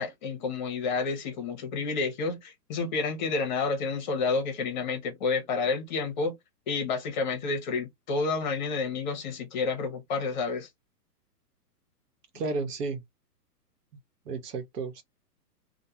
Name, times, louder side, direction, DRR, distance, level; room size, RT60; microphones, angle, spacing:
voice 1, 0.0-6.3 6.7-10.7, left 4 dB, 30° left, 0.7 m, -30 dB
voice 2, 12.3-13.0 14.3-15.0, right 3 dB, 65° right, 1.1 m, -32 dB
2.2 x 2.2 x 2.8 m
hypercardioid pair, 150°, 49 cm